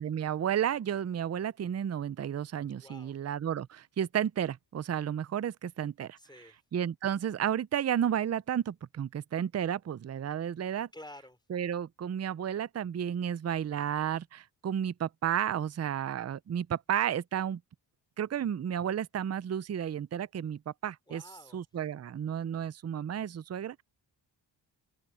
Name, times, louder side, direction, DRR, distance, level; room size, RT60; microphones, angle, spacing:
voice 1, 0.0-6.2 6.7-10.9 11.5-17.6 18.2-21.2 21.5-23.8, right 9 dB, 35° right, 0.6 m, -32 dB
voice 2, 2.8-3.2 6.2-6.6 10.9-11.4 21.1-21.7, left 1 dB, 10° left, 5.4 m, -50 dB
open air
cardioid pair, 75°, 45 cm